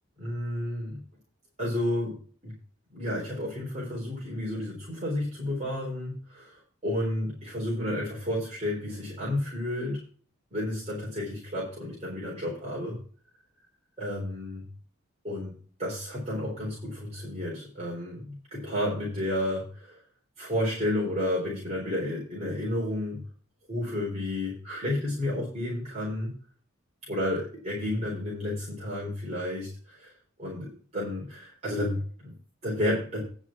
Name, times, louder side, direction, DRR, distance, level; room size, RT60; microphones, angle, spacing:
voice 1, 0.2-1.0 1.6-2.2 2.4-2.5 2.9-10.0 10.5-13.0 14.0-14.6 15.2-15.5 15.8-20.0 20.4-23.2 23.7-26.3 27.1-30.1 30.4-32.3 32.6-33.2, left 1 dB, 30° right, -6 dB, 4.0 m, -31 dB
9.8 x 6.1 x 6.1 m, 0.43 s
head